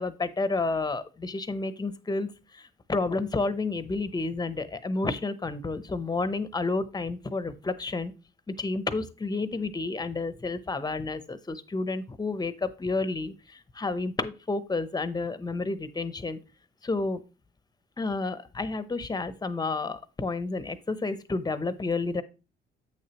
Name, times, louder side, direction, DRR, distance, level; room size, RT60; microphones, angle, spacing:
voice 1, 0.0-8.1 8.5-16.4 16.8-17.2 18.0-22.2, left 3 dB, 20° left, 13 dB, 0.8 m, -30 dB
8.5 x 6.6 x 3.0 m, 0.31 s
cardioid pair, 90°, 20 cm